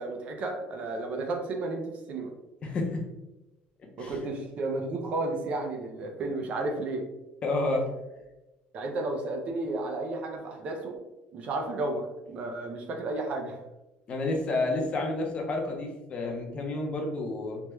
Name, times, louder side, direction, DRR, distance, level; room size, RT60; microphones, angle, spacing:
voice 1, 0.0-2.3 4.0-7.0 8.7-11.0 11.3-13.6, right 2 dB, 40° right, 3 dB, 0.4 m, -32 dB
voice 2, 2.6-3.0 4.0-4.1 7.4-7.9 14.1-17.6, left 2 dB, 30° left, 1 dB, 0.5 m, -30 dB
3.3 x 2.1 x 2.9 m, 0.99 s
cardioid pair, 170°, 4 cm